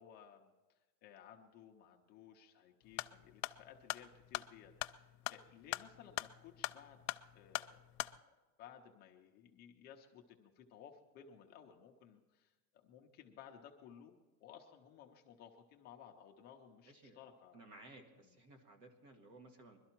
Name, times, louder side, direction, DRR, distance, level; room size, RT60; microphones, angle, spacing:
voice 1, 0.0-7.0 7.3-8.3 8.6-17.6, left 8 dB, 25° left, 1 dB, 0.4 m, -58 dB
sound 1, 2.8-8.2, left 19 dB, 85° left, 0.6 m, -43 dB
voice 2, 16.9-17.2 17.5-19.8, right 2 dB, 75° right, 4 dB, 2.3 m, -58 dB
21.5 x 12.5 x 4.4 m, 1.2 s
supercardioid pair, 170°, 47 cm